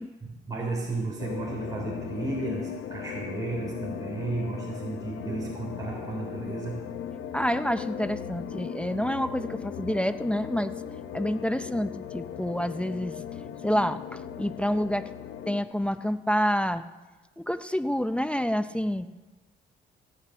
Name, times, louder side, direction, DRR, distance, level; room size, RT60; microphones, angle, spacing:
voice 1, 0.0-6.8, right 2 dB, 20° right, -4 dB, 3.6 m, -33 dB
sound 1, 1.2-15.6, left 9 dB, 80° left, 0.9 m, -38 dB
voice 2, 7.3-10.7 11.1-13.1 13.6-15.1 15.5-16.8 17.4-19.1, equal, 5° left, 11 dB, 0.6 m, -28 dB
16.0 x 6.8 x 9.4 m, 1.2 s
cardioid pair, 90°, 20 cm